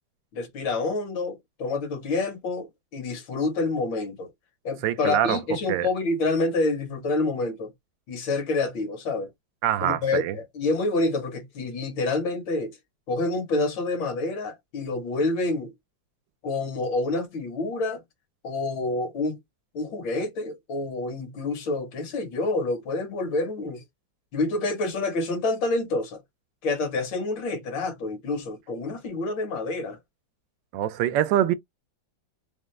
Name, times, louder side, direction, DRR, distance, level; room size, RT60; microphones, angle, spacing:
voice 1, 0.3-4.3 4.7-7.7 8.1-9.3 9.8-12.8 13.1-15.7 16.4-18.0 18.4-19.4 19.7-23.8 24.3-26.2 26.6-30.0, left 2 dB, 80° left, 2.0 m, -28 dB
voice 2, 4.8-5.4 5.7-5.9 9.6-10.4 30.7-31.5, right 11 dB, 80° right, 1.2 m, -24 dB
4.9 x 2.1 x 3.1 m
omnidirectional pair, 2.0 m